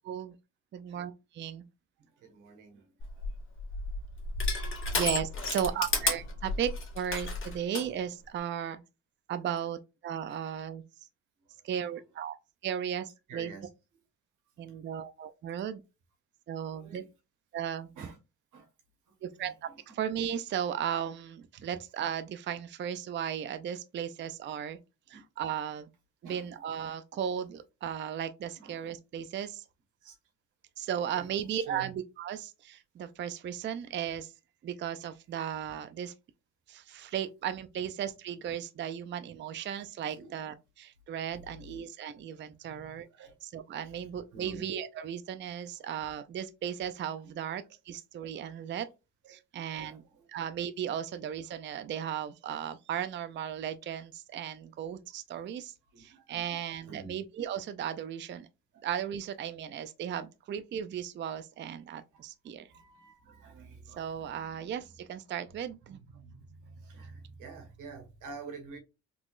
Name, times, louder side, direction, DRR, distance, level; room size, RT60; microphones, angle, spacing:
voice 1, 0.7-1.6 4.9-8.8 9.3-10.8 11.6-12.4 12.6-13.5 14.6-15.8 16.5-17.0 17.5-17.9 19.2-19.7 19.9-24.8 25.1-25.9 26.2-29.6 30.8-34.3 34.6-36.1 36.7-43.1 43.4-48.9 49.3-50.0 50.3-58.5 58.8-62.7 64.0-66.0, right 9 dB, 40° right, 0.4 m, -36 dB
voice 2, 2.2-3.3 5.7-5.8 13.3-13.7 14.7-14.8 16.7-17.0 17.9-18.2 18.5-18.7 19.1-19.8 25.1-25.2 26.2-26.5 28.6-28.9 30.0-30.2 31.1-31.9 40.1-40.4 41.3-41.6 42.6-43.3 44.3-44.7 47.2-47.4 48.7-48.8 49.2-49.4 49.7-50.3 55.3-55.4 55.9-57.2 58.7-58.8 62.1-64.7 65.9-68.8, right 5 dB, 90° right, 1.5 m, -49 dB
Crushing, 3.0-7.9, left 3 dB, 40° left, 1.5 m, -32 dB
3.7 x 3.0 x 2.4 m
cardioid pair, 90°, 30 cm